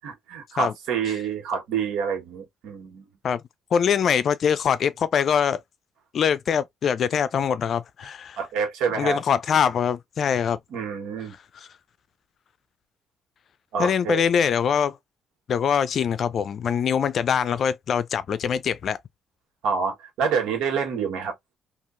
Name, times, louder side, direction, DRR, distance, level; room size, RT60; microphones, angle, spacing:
voice 1, 0.0-3.0 8.4-9.2 10.7-11.3 13.7-14.2 19.6-21.3, right 6 dB, 85° right, 1.3 m, -27 dB
voice 2, 3.7-5.6 6.1-8.4 9.0-10.6 13.8-15.0 15.5-19.0, left 7 dB, 60° left, 0.4 m, -23 dB
2.8 x 2.5 x 2.5 m
supercardioid pair, 75°, 0 cm